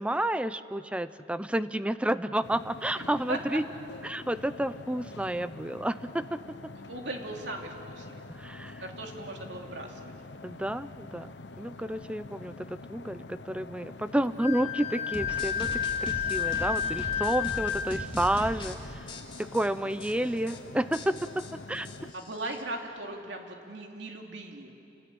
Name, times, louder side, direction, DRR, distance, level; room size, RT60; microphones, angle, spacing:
voice 1, 0.0-3.6 4.0-6.7 8.4-8.8 10.4-11.3 11.6-19.1 19.4-21.9, right 1 dB, 5° right, 14 dB, 0.6 m, -30 dB
sound 1, 2.4-22.1, left 2 dB, 85° left, 1.0 m, -46 dB
voice 2, 3.0-3.4 6.9-8.1 8.8-10.1 22.1-24.7, right 2 dB, 80° right, 2 dB, 2.9 m, -38 dB
Wind instrument woodwind instrument, 14.4-18.1, left 8 dB, 45° left, 4.7 m, -31 dB
sound 2, 15.1-18.8 19.1-19.7 20.0-20.1 20.4-20.6 20.9-22.6, left 1 dB, 30° left, 2.7 m, -39 dB
28.5 x 19.5 x 8.9 m, 2.9 s
head